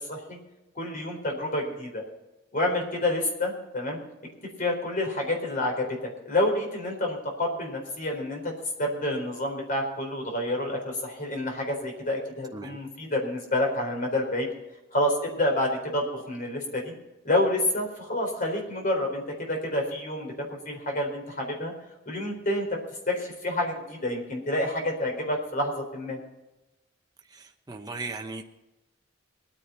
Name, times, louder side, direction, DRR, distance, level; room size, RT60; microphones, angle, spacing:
voice 1, 0.1-0.4 0.7-2.0 2.5-4.0 4.6-8.5 8.8-14.5 14.9-16.9 17.2-21.7 22.1-22.8 23.1-26.2, left 1 dB, 45° left, 2 dB, 4.1 m, -28 dB
voice 2, 27.3-28.4, right 3 dB, 20° right, 2 dB, 0.9 m, -37 dB
21.0 x 10.0 x 4.3 m, 1.0 s
head